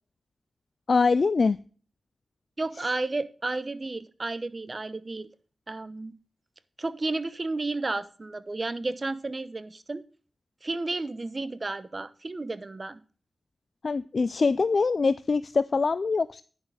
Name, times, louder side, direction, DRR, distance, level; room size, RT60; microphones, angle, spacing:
voice 1, 0.9-1.6 13.8-16.4, left 4 dB, 60° left, 15 dB, 0.3 m, -23 dB
voice 2, 2.6-5.3 5.7-6.1 6.8-10.0 10.6-13.0, right 2 dB, 45° right, 14 dB, 0.9 m, -32 dB
10.0 x 6.4 x 4.8 m, 0.40 s
cardioid pair, 45°, 0 cm